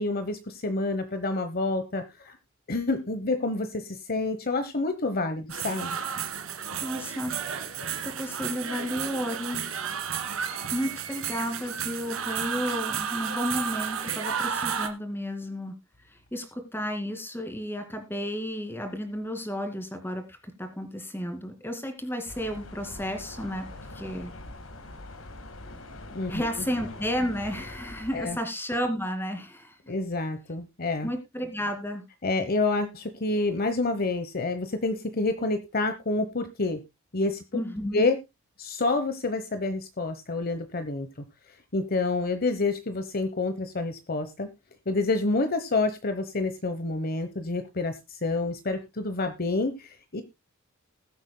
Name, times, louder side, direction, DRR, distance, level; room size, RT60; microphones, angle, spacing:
voice 1, 0.0-2.3 2.7-6.0 26.1-26.7 28.1-28.4 29.9-31.1 32.2-36.8 37.1-37.6 37.9-38.2 38.6-41.1 41.7-44.5 44.9-50.2, left 3 dB, 45° left, 9 dB, 1.1 m, -28 dB
sound 1, 5.5-14.9, right 7 dB, 90° right, 1.9 m, -32 dB
voice 2, 6.8-7.4 7.7-9.6 10.7-15.7 16.3-23.7 23.9-24.3 26.3-29.8 31.0-32.0 37.5-38.0, equal, 10° left, 6 dB, 2.4 m, -32 dB
sound 2, 22.3-28.4, left 2 dB, 80° left, 1.8 m, -43 dB
20.5 x 8.2 x 2.2 m, 0.23 s
head